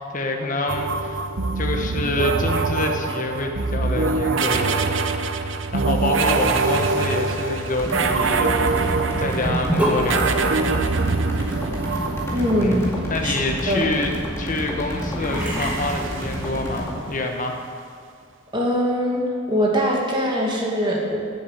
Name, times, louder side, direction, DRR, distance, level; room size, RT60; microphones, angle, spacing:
voice 1, 0.1-1.2 1.5-5.4 5.7-10.7 11.6-11.7 12.6-17.6, left 2 dB, 40° left, 3 dB, 1.1 m, -27 dB
sound 1, 0.7-13.2 15.3-16.9, right 4 dB, 65° right, 0.7 m, -24 dB
sound 2, 7.8-17.0, equal, 15° left, 2.1 m, -30 dB
Sink (filling or washing) / Bathtub (filling or washing), 9.4-16.7, right 1 dB, 5° right, 2.3 m, -30 dB
voice 2, 12.3-12.9 13.2-13.3 13.7-13.8 18.5-19.2 19.5-21.2, equal, 25° right, -2 dB, 2.1 m, -22 dB
11.0 x 7.6 x 8.0 m, 2.2 s
head